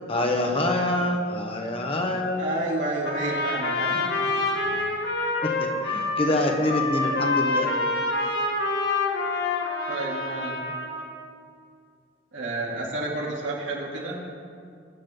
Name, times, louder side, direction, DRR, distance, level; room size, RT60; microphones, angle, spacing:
voice 1, 0.1-2.4 5.4-7.7, left 1 dB, 30° left, 2 dB, 1.4 m, -26 dB
voice 2, 2.4-4.2 4.6-4.8 9.9-10.6 12.3-14.2, right 2 dB, 90° right, -5 dB, 3.7 m, -30 dB
Trumpet, 3.0-11.1, left 2 dB, 60° left, 2.0 m, -27 dB
22.5 x 10.0 x 4.0 m, 2.2 s
head